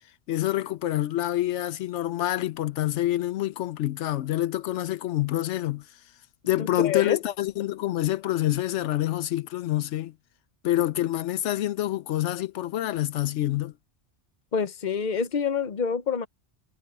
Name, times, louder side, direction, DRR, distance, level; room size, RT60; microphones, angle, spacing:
voice 1, 0.3-5.8 6.5-10.1 10.6-13.7, left 14 dB, 85° left, 0.9 m, -27 dB
voice 2, 6.6-7.2 14.5-16.3, left 6 dB, 45° left, 1.0 m, -27 dB
omnidirectional pair, 1.2 m